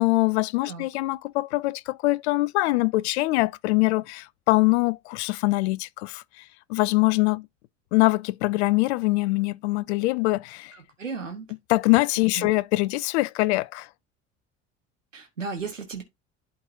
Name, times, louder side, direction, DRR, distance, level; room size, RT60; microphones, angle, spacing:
voice 1, 0.0-6.4 6.7-7.5 7.9-10.7 11.7-13.9, left 21 dB, 60° left, 0.5 m, -23 dB
voice 2, 11.0-11.5 12.4-12.5 15.1-16.0, right 5 dB, 85° right, 1.1 m, -34 dB
11.5 x 3.9 x 2.6 m
figure-of-eight pair, 60°, 37 cm